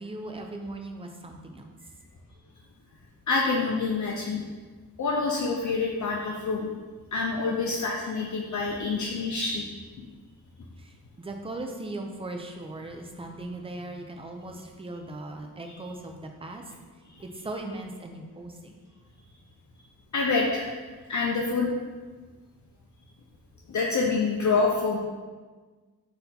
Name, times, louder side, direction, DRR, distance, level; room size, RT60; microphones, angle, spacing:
voice 1, 0.0-1.7 10.8-16.6 17.2-18.7, right 2 dB, 15° right, 3 dB, 0.4 m, -38 dB
voice 2, 3.3-4.5 5.0-6.7 7.1-9.6 10.0-10.1 15.6-15.8 20.1-20.7 21.1-21.7 23.7-25.0, left 4 dB, 55° left, -2 dB, 0.5 m, -27 dB
4.2 x 2.7 x 3.9 m, 1.4 s
wide cardioid pair, 95°, 36 cm